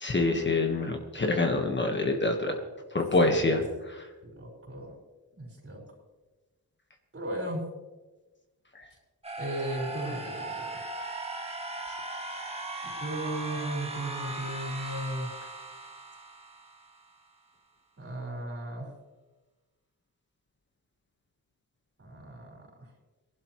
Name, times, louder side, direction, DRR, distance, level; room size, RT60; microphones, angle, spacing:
voice 1, 0.0-2.5 2.9-3.6, left 2 dB, 30° left, 3 dB, 1.5 m, -26 dB
voice 2, 3.2-3.7 4.2-4.9 5.4-5.8 7.1-7.7 9.4-10.8 12.8-15.3 18.0-18.9 22.0-22.9, right 1 dB, 40° right, -2 dB, 5.4 m, -36 dB
sound 1, 9.2-17.2, right 2 dB, 15° right, 1.7 m, -38 dB
22.5 x 11.5 x 3.2 m, 1.2 s
wide cardioid pair, 140°, 36 cm